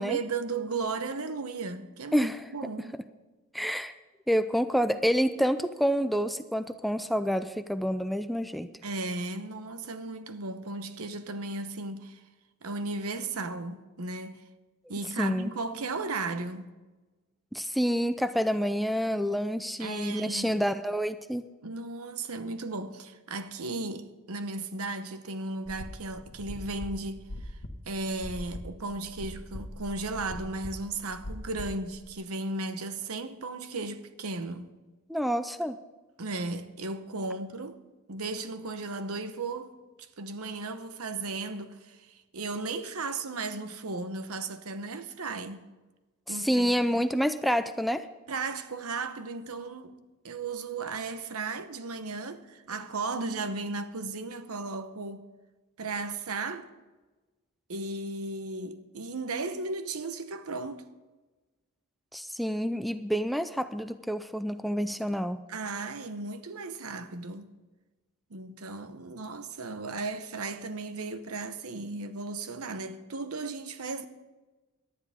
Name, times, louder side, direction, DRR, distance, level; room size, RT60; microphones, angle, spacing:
voice 1, 0.0-3.0 8.8-12.2 12.6-14.4 14.9-16.7 19.8-20.6 21.6-27.5 27.8-34.7 36.2-37.8 38.1-45.6 46.3-47.0 48.3-50.0 50.2-55.2 55.8-56.7 57.7-60.8 65.5-67.5 68.3-74.1, right 3 dB, 75° right, 0.9 m, -35 dB
voice 2, 3.5-3.9 4.3-8.7 15.2-15.5 17.5-21.5 35.1-35.8 46.3-48.1 62.1-65.4, equal, ahead, 0.4 m, -28 dB
sound 1, 25.7-32.1, left 1 dB, 85° left, 1.3 m, -42 dB
18.5 x 11.5 x 3.6 m
head